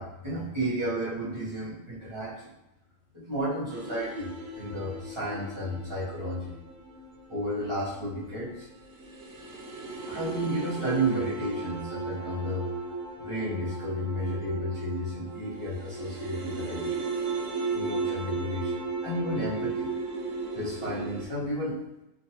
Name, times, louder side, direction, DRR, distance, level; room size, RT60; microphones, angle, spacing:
voice 1, 0.0-2.5 3.1-6.6 7.3-8.7 10.0-12.7 13.2-17.1 17.7-19.9 20.5-21.8, right 1 dB, 25° right, -9 dB, 0.7 m, -32 dB
sound 1, 3.7-21.3, right 3 dB, 70° right, 0.9 m, -36 dB
3.6 x 2.2 x 2.8 m, 0.93 s
omnidirectional pair, 1.6 m